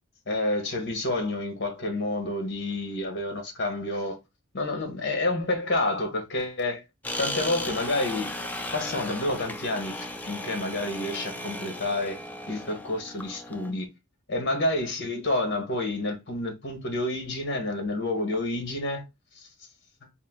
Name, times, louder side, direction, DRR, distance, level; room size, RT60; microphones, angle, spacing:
voice 1, 0.3-4.2 4.5-6.8 7.2-8.3 8.7-12.2 12.5-13.9 14.3-19.0, left 2 dB, 55° left, 1.2 m, -29 dB
sound 1, 7.0-13.7, left 1 dB, 10° left, 0.4 m, -36 dB
3.6 x 2.5 x 3.6 m
head